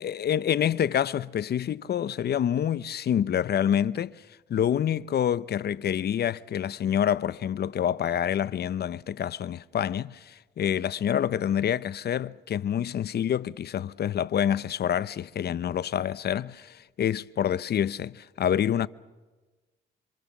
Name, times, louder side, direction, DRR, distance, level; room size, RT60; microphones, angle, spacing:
voice 1, 0.0-4.2 4.5-18.9, left 9 dB, 55° left, 0.7 m, -27 dB
27.5 x 25.5 x 7.2 m
cardioid pair, 90°, 20 cm